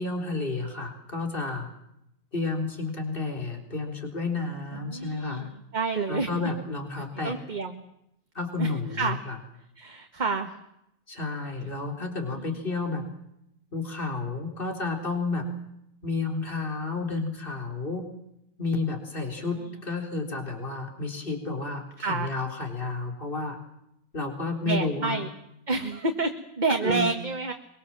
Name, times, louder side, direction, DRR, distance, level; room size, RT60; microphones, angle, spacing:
voice 1, 0.0-1.7 2.3-5.5 6.1-7.3 8.3-9.4 11.1-13.0 13.7-15.5 16.0-18.1 18.6-23.6 24.1-25.2 26.8-27.1, left 3 dB, 35° left, 3 dB, 4.0 m, -31 dB
voice 2, 4.7-6.5 7.0-7.8 8.6-9.2 9.8-10.6 12.0-12.2 22.0-22.3 24.6-25.3 25.7-27.5, right 4 dB, 30° right, 5 dB, 1.6 m, -29 dB
23.5 x 23.5 x 7.5 m, 0.81 s
omnidirectional pair, 1.6 m